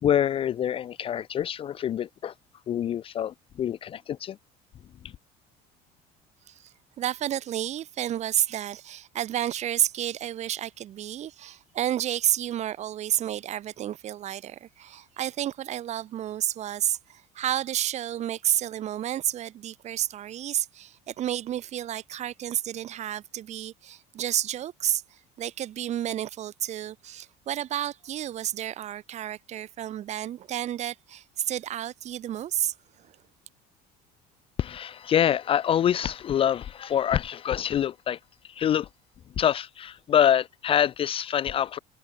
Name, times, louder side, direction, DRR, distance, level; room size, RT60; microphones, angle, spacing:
voice 1, 0.0-2.3 2.7-4.4 5.0-5.1 34.6-38.9 39.4-41.8, left 10 dB, 30° left, 0.5 m, -26 dB
voice 2, 7.0-25.0 25.4-32.7, right 11 dB, 40° right, 1.3 m, -30 dB
cardioid pair, 145°, 18 cm